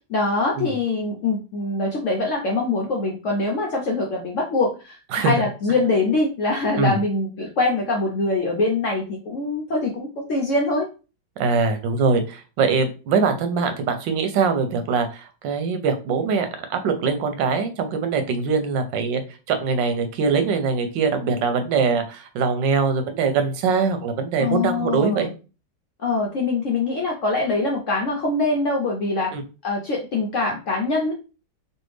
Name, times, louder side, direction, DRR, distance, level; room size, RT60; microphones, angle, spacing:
voice 1, 0.1-10.9 24.4-25.3 26.0-29.3 29.6-31.1, left 3 dB, 70° left, 0 dB, 0.7 m, -23 dB
voice 2, 11.4-19.2 19.5-25.3 29.3-29.4, right 5 dB, 85° right, 7 dB, 1.4 m, -22 dB
3.3 x 2.5 x 3.1 m, 0.33 s
omnidirectional pair, 1.9 m